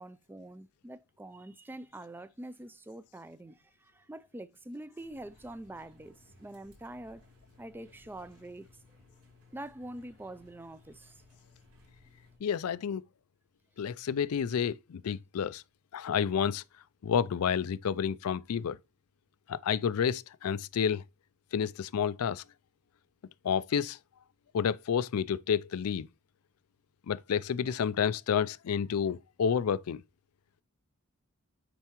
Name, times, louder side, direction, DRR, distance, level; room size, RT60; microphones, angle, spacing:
voice 1, 0.0-7.2 7.6-8.7 9.5-11.2, right 1 dB, 10° right, 0.3 m, -45 dB
sound 1, 5.0-12.4, left 2 dB, 80° right, 4.9 m, -60 dB
voice 2, 12.4-13.0 13.8-15.6 15.9-16.6 17.0-18.8 19.5-21.0 21.5-22.4 23.4-24.0 24.5-26.1 27.1-30.0, left 7 dB, 80° left, 0.4 m, -30 dB
9.2 x 4.4 x 3.0 m
head